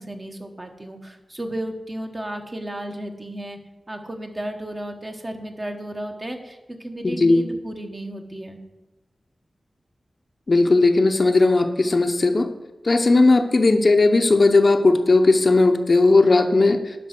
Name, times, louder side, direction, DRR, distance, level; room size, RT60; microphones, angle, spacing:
voice 1, 0.0-3.6 3.9-8.6, right 1 dB, 25° right, 4 dB, 1.1 m, -33 dB
voice 2, 7.0-7.4 10.5-12.5 12.8-16.9, left 3 dB, 40° left, 6 dB, 0.7 m, -17 dB
10.5 x 5.5 x 5.9 m, 1.1 s
wide cardioid pair, 120°, 0 cm